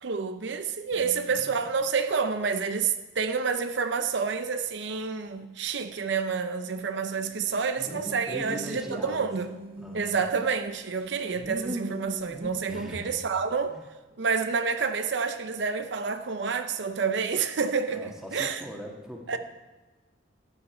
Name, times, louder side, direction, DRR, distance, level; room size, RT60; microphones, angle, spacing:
voice 1, 0.0-9.5 9.9-13.8 14.2-18.6 19.3-19.4, right 5 dB, 70° right, 0.6 m, -29 dB
voice 2, 0.9-1.6 7.8-9.3 9.8-10.2 12.7-13.1 13.7-13.9 17.9-19.4, equal, 5° right, 1.6 m, -41 dB
sound 1, 7.8-10.6 11.0-12.5, equal, 30° right, 1.2 m, -39 dB
14.5 x 10.5 x 4.4 m
head